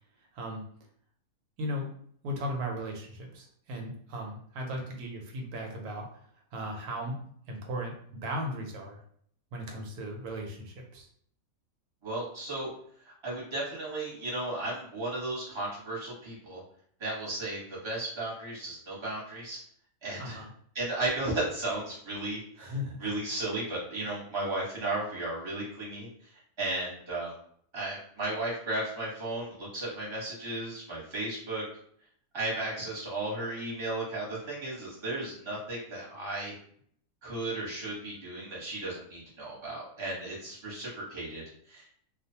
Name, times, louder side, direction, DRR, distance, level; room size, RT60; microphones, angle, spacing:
voice 1, 2.2-6.2 6.5-7.2 7.5-9.0 9.5-11.1 20.2-20.5 22.6-23.1, equal, 90° right, 1 dB, 1.2 m, -37 dB
voice 2, 12.0-12.7 13.0-16.6 17.0-19.6 20.0-20.4 20.7-26.3 26.6-27.3 27.7-31.6 32.3-36.5 37.2-41.9, right 2 dB, 20° right, -6 dB, 1.1 m, -35 dB
2.5 x 2.3 x 2.7 m, 0.62 s
omnidirectional pair, 1.5 m